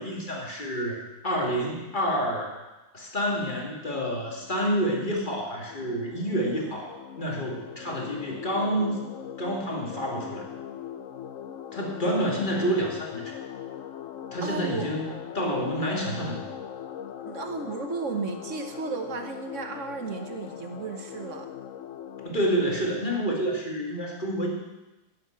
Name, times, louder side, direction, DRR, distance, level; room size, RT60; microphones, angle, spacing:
voice 1, 0.0-2.6 2.9-9.0 9.4-10.5 11.7-13.3 14.3-15.1 15.3-16.4 22.2-24.5, equal, 40° left, -1 dB, 2.5 m, -28 dB
sound 1, 3.8-22.3, left 9 dB, 80° left, 1.2 m, -41 dB
voice 2, 14.4-14.9 17.2-21.5, right 4 dB, 75° right, 5 dB, 1.6 m, -34 dB
11.5 x 7.5 x 8.8 m, 1.1 s
omnidirectional pair, 1.3 m